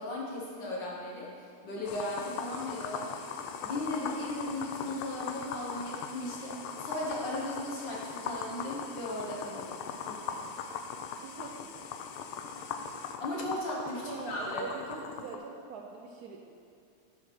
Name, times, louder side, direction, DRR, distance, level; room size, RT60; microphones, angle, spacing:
voice 1, 0.0-3.1 3.6-10.4 13.2-14.6, left 1 dB, 60° left, -4 dB, 1.9 m, -37 dB
sound 1, 1.9-15.4, left 6 dB, 85° left, 1.5 m, -40 dB
voice 2, 11.2-11.7 14.0-16.5, right 5 dB, 80° right, 1 dB, 0.8 m, -43 dB
8.5 x 5.1 x 6.1 m, 2.4 s
omnidirectional pair, 2.3 m